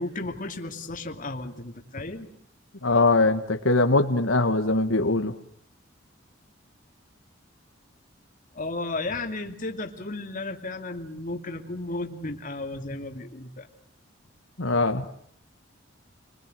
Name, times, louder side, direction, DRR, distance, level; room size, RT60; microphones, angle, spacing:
voice 1, 0.0-2.3 8.5-13.7, left 2 dB, 45° left, 4 dB, 2.6 m, -34 dB
voice 2, 2.8-5.3 14.6-15.1, left 2 dB, 85° left, 6 dB, 1.8 m, -22 dB
29.5 x 21.5 x 7.8 m, 0.64 s
head